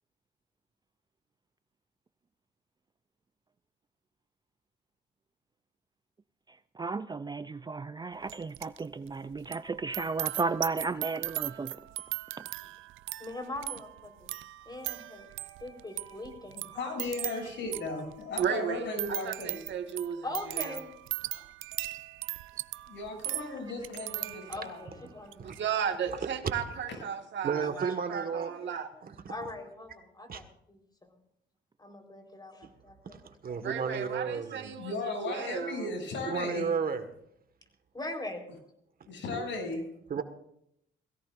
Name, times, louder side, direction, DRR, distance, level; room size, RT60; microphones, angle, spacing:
voice 1, 6.8-11.7, right 4 dB, 20° right, 0.5 m, -34 dB
sound 1, 8.3-8.8 9.1-24.8 25.3-25.6, right 16 dB, 80° right, 0.5 m, -39 dB
voice 2, 13.2-14.3 14.7-15.3 15.6-17.4 20.2-20.9 24.5-25.5 27.8-29.0 29.3-30.8 31.8-33.2 33.5-33.6 37.9-38.5, left 2 dB, 20° left, 4.3 m, -42 dB
voice 3, 16.5-19.6 21.3-21.4 22.9-25.0 25.5-25.6 26.9-27.0 29.3-29.4 34.8-36.6 39.0-39.8, left 3 dB, 70° left, 7.5 m, -36 dB
voice 4, 18.4-20.8 25.6-28.9 33.6-35.9, right 8 dB, 65° right, 1.8 m, -35 dB
voice 5, 27.4-28.7 29.0-29.2 30.3-30.4 33.0-34.8 36.3-37.0 39.4-39.5 40.1-40.2, right 6 dB, 45° right, 1.8 m, -33 dB
21.5 x 16.5 x 2.6 m
cardioid pair, 90°, 20 cm